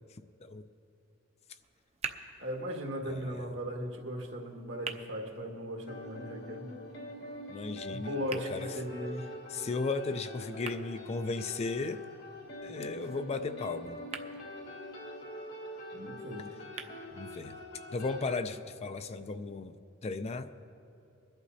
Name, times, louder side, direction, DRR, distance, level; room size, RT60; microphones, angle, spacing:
voice 1, 0.1-0.7 3.1-3.4 7.5-8.7 9.5-12.0 12.6-14.0 17.1-17.6 17.9-19.8 20.0-20.5, left 3 dB, 35° left, 10 dB, 0.4 m, -36 dB
sound 1, 1.6-17.6, right 5 dB, 35° right, 0.6 m, -49 dB
voice 2, 2.4-6.7 7.9-9.3 15.9-16.5, equal, 70° right, 0 dB, 1.9 m, -38 dB
sound 2, 5.9-18.4, left 1 dB, 85° left, 2.2 m, -44 dB
23.5 x 11.5 x 2.8 m, 2.7 s
head